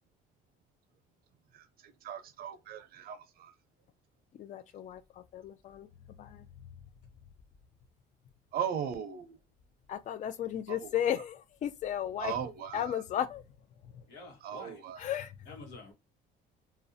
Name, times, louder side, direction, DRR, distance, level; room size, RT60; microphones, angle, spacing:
voice 1, 2.0-3.5 8.5-9.4 10.7-10.9 12.2-13.0 14.4-15.0, right 8 dB, 60° right, 0.5 m, -37 dB
voice 2, 4.4-5.9 6.2-6.5 9.9-12.3 12.7-13.4 13.9-14.0 15.0-15.4, left 10 dB, 45° left, 0.4 m, -34 dB
voice 3, 14.1-14.9 15.5-15.9, left 2 dB, 85° left, 0.9 m, -49 dB
2.5 x 2.0 x 2.6 m
cardioid pair, 110°, 17 cm